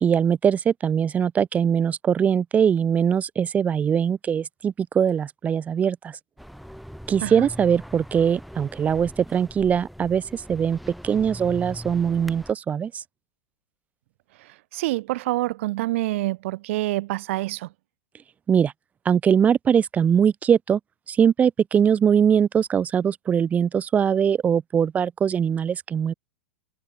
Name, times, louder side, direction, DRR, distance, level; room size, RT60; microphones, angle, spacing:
voice 1, 0.0-6.2 7.1-10.8 11.0-13.0 18.5-18.7 19.1-20.8 21.1-26.1, right 7 dB, 20° right, 1.8 m, -21 dB
sound 1, 6.4-12.5, equal, ahead, 3.1 m, -40 dB
voice 2, 14.4-17.7, right 18 dB, 60° right, 5.0 m, -27 dB
hypercardioid pair, 140°, 8 cm